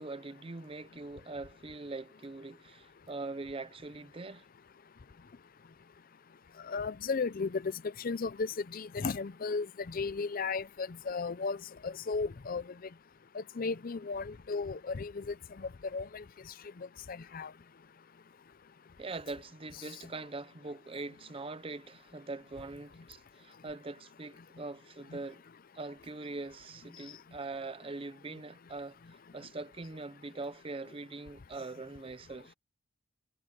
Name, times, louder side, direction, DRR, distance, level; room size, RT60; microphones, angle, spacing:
voice 1, 0.0-4.4 19.0-25.4 25.7-29.0 29.3-32.5, right 3 dB, 25° right, 0.5 m, -42 dB
voice 2, 6.7-7.7 8.0-11.6 11.8-12.6 13.3-16.2 17.1-17.5, left 4 dB, 45° left, 0.5 m, -35 dB
head